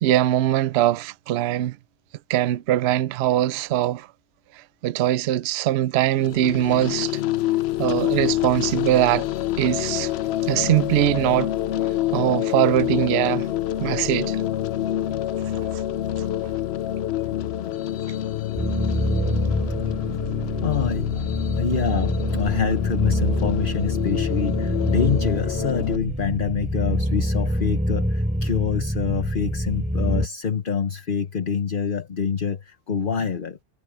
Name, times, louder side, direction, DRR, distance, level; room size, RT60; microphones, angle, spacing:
voice 1, 0.0-1.8 2.3-4.1 4.5-7.1 7.8-9.3 9.6-10.1 10.4-11.5 12.1-13.5 13.8-14.4, right 13 dB, 75° right, 0.6 m, -22 dB
sound 1, 6.2-26.0, left 12 dB, 75° left, 0.6 m, -27 dB
sound 2, 18.6-30.3, equal, 5° right, 4.1 m, -26 dB
voice 2, 20.6-33.6, left 6 dB, 40° left, 1.0 m, -26 dB
omnidirectional pair, 1.7 m